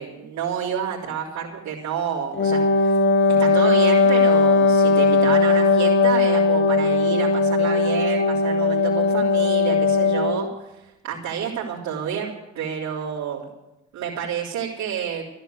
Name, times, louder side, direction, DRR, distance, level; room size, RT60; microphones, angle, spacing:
voice 1, 0.0-3.0 3.3-10.5 11.0-13.4 13.9-15.3, right 8 dB, 75° right, -8 dB, 3.6 m, -29 dB
Wind instrument woodwind instrument, 2.3-10.5, left 4 dB, 40° left, 1.2 m, -18 dB
14.5 x 11.5 x 8.0 m, 0.98 s
cardioid pair, 90°, 30 cm